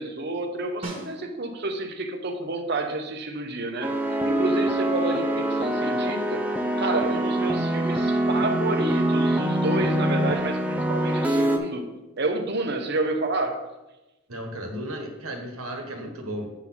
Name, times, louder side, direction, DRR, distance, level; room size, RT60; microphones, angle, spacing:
voice 1, 0.0-4.0 4.2-6.4 6.8-11.8 12.2-13.7, right 2 dB, 50° right, 5 dB, 0.9 m, -29 dB
Snare drum, 0.8-1.7 6.2-6.3, right 2 dB, 25° right, 1.5 m, -38 dB
sound 1, 3.8-11.6, right 1 dB, 5° right, 0.6 m, -24 dB
voice 2, 14.3-16.5, right 1 dB, 80° right, 3 dB, 1.5 m, -34 dB
8.3 x 4.1 x 6.0 m, 1.0 s
head